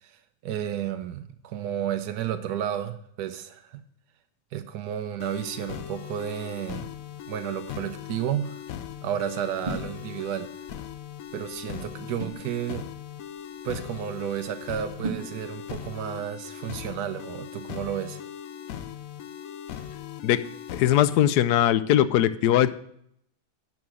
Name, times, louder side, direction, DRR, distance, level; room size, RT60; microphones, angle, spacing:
voice 1, 0.0-3.8 4.5-6.9 7.3-8.6 9.0-10.5 11.3-12.8 13.6-18.2, right 10 dB, 85° right, 8 dB, 1.2 m, -32 dB
sound 1, 5.2-21.2, left 9 dB, 65° left, 1.0 m, -39 dB
sound 2, 6.8-16.1, right 3 dB, 35° right, 1.3 m, -42 dB
voice 2, 20.7-22.7, left 12 dB, 85° left, 14 dB, 1.1 m, -20 dB
10.5 x 4.8 x 6.3 m, 0.71 s
omnidirectional pair, 1.7 m